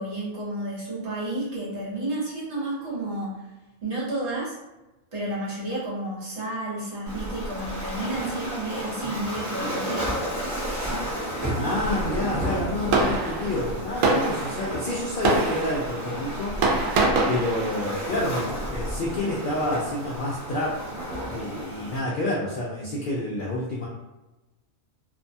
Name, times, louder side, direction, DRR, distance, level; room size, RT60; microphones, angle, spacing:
voice 1, 0.0-3.4 3.8-4.6 5.1-10.2, right 1 dB, 60° right, -6 dB, 1.2 m, -31 dB
Waves surf, 7.1-22.0, equal, 15° right, 0.9 m, -32 dB
voice 2, 11.6-16.9 17.3-20.8 21.3-23.9, left 1 dB, 65° left, -5 dB, 0.5 m, -29 dB
Fireworks, 11.7-21.0, right 3 dB, 75° right, 1.0 m, -28 dB
2.6 x 2.2 x 2.6 m, 1.0 s
omnidirectional pair, 1.4 m